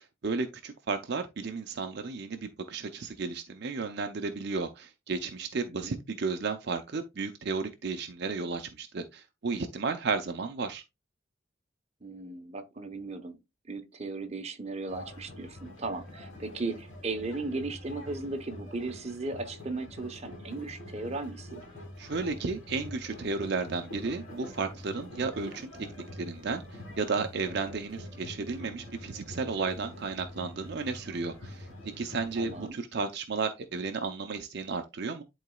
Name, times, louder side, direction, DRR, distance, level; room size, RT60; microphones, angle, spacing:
voice 1, 0.2-10.8 22.0-25.9 26.1-35.2, right 4 dB, 55° right, 0.6 m, -33 dB
voice 2, 5.6-6.0 12.0-13.4 13.7-21.6 32.4-32.8, right 3 dB, 35° right, 0.9 m, -36 dB
sound 1, 14.9-32.7, left 1 dB, 85° left, 2.5 m, -45 dB
11.0 x 3.9 x 2.3 m
head